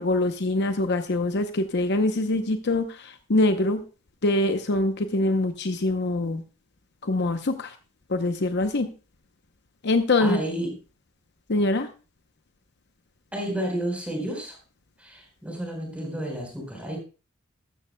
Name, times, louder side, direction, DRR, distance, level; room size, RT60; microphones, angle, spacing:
voice 1, 0.0-3.8 4.2-6.4 7.0-7.7 8.1-8.9 9.8-10.4 11.5-11.9, left 2 dB, 55° left, 8 dB, 0.8 m, -24 dB
voice 2, 10.2-10.8 13.3-14.6 15.0-17.0, right 1 dB, 5° right, 0 dB, 4.3 m, -31 dB
14.0 x 13.0 x 2.2 m, 0.34 s
head